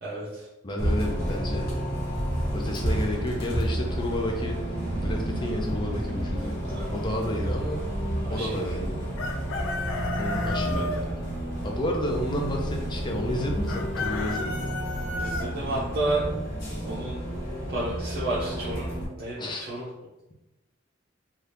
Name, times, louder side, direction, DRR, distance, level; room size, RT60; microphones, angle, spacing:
voice 1, 0.0-0.5 6.6-6.9 8.3-8.6 10.7-11.1 15.2-16.3 16.9-17.2 17.7-18.9 19.2-19.9, right 2 dB, 55° right, -7 dB, 0.6 m, -31 dB
voice 2, 0.6-1.7 2.5-6.5 6.9-7.8 8.3-9.0 10.2-11.1 11.6-14.7 19.4-19.7, left 1 dB, 25° left, 1 dB, 0.4 m, -31 dB
Bus, 0.8-19.1, right 1 dB, 50° left, 1.0 m, -30 dB
sound 1, 5.6-12.8 13.1-13.3 13.6-15.2 16.1-17.8, left 1 dB, 35° right, 1.2 m, -46 dB
Chicken rooster, 9.2-11.0 13.7-15.5, left 3 dB, 90° left, 0.4 m, -32 dB
2.7 x 2.3 x 3.3 m, 0.97 s
head